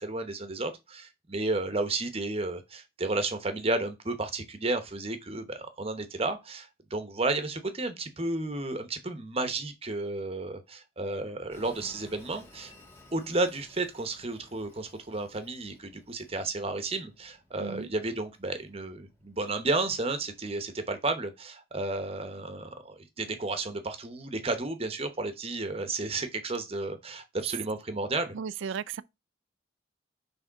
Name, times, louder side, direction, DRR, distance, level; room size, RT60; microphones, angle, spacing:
voice 1, 0.0-12.7 13.1-28.4, right 2 dB, 30° right, 0.9 m, -32 dB
Train, 11.5-20.5, left 1 dB, 15° left, 1.8 m, -57 dB
voice 2, 17.6-17.9 28.3-29.0, right 6 dB, 85° right, 0.4 m, -35 dB
6.3 x 3.4 x 4.6 m
head